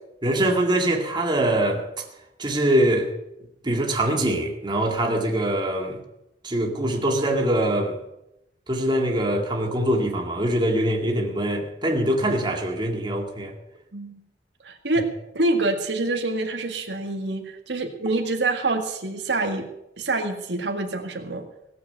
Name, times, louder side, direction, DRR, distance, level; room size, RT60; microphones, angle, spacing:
voice 1, 0.2-2.1 2.4-3.1 3.6-6.0 6.4-8.0 8.7-13.6, right 1 dB, 25° right, 2.2 m, -23 dB
voice 2, 14.6-15.1 15.3-19.7 20.0-21.5, right 2 dB, 90° right, 1.8 m, -26 dB
17.5 x 7.7 x 8.0 m
head